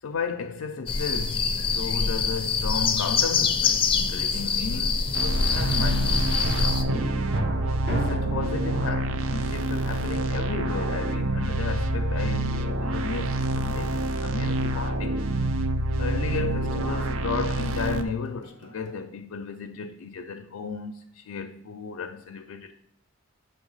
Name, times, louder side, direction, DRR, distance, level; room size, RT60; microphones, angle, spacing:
voice 1, 0.0-6.8 7.9-15.3 16.0-22.7, left 5 dB, 85° left, 0.4 m, -34 dB
sound 1, 0.9-6.8, left 5 dB, 25° left, 0.4 m, -25 dB
sound 2, 4.0-10.4 17.9-19.0, right 1 dB, 55° right, 1.1 m, -35 dB
sound 3, 5.1-18.0, right 1 dB, 75° right, 0.5 m, -27 dB
7.1 x 3.3 x 5.4 m
head